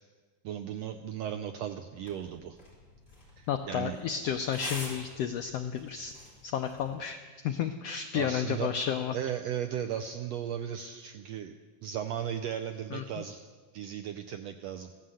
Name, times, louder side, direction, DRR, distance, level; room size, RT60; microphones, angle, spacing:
voice 1, 0.4-2.6 3.4-4.0 8.1-8.7 9.1-11.5 11.8-13.5 13.7-14.9, right 9 dB, 85° right, 6 dB, 1.5 m, -36 dB
sound 1, 1.9-6.9, left 2 dB, 30° left, 4.8 m, -47 dB
voice 2, 3.5-6.1 6.4-7.2 7.4-9.1 12.9-13.0, left 8 dB, 90° left, 7 dB, 1.4 m, -32 dB
15.0 x 11.5 x 7.7 m, 1.4 s
omnidirectional pair, 3.6 m